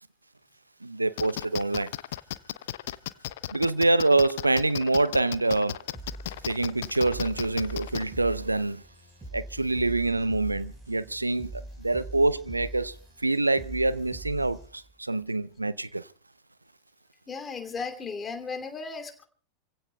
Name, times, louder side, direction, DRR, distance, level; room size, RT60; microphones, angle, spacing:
voice 1, 0.8-1.9 3.5-5.8 6.4-8.8 9.3-12.9 13.2-16.1, right 2 dB, 85° right, 0.7 m, -26 dB
sound 1, 1.2-8.0, left 14 dB, 55° left, 0.6 m, -35 dB
sound 2, 5.9-14.9, right 2 dB, 15° right, 5.1 m, -43 dB
voice 2, 17.3-19.3, left 4 dB, 20° left, 2.8 m, -35 dB
28.5 x 16.5 x 2.3 m
figure-of-eight pair, 90°, 0 cm